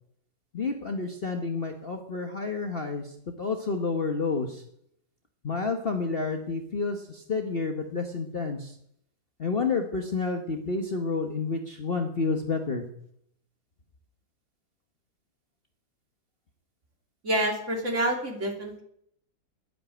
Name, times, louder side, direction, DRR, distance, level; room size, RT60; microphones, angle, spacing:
voice 1, 0.5-3.0 3.4-4.6 5.4-8.7 9.4-12.8, left 4 dB, 35° left, 5 dB, 1.2 m, -29 dB
voice 2, 17.2-18.8, right 1 dB, 45° right, 2 dB, 3.3 m, -27 dB
11.0 x 10.0 x 9.0 m, 0.71 s
omnidirectional pair, 1.9 m